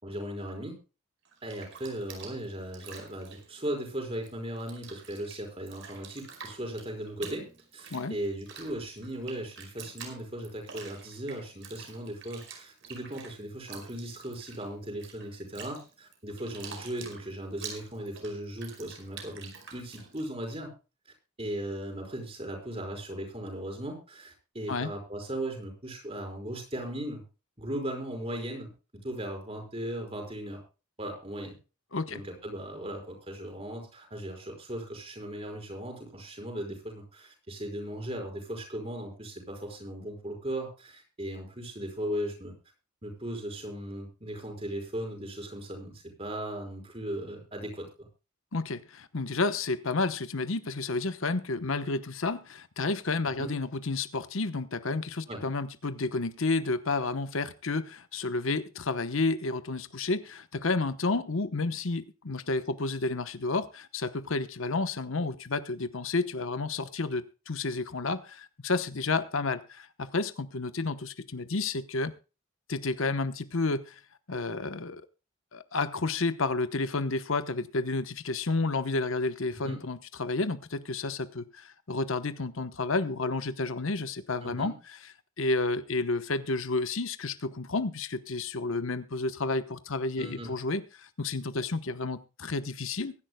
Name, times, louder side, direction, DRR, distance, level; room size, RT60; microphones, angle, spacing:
voice 1, 0.0-0.8 1.4-7.5 7.7-20.7 21.4-27.2 27.6-28.7 29.0-30.6 31.0-31.6 32.1-42.6 43.0-48.1 53.4-53.5 55.3-55.4 79.6-79.8 84.4-84.7 90.2-90.5, right 1 dB, 25° right, 3 dB, 5.3 m, -37 dB
Bathtub (filling or washing), 1.2-4.3 4.6-20.5, right 6 dB, 55° right, 5.0 m, -47 dB
voice 2, 31.9-32.2 48.5-72.1 72.7-74.0 74.3-75.0 75.5-84.7 85.4-93.1, left 3 dB, 65° left, 11 dB, 1.0 m, -31 dB
23.5 x 11.0 x 2.3 m, 0.32 s
head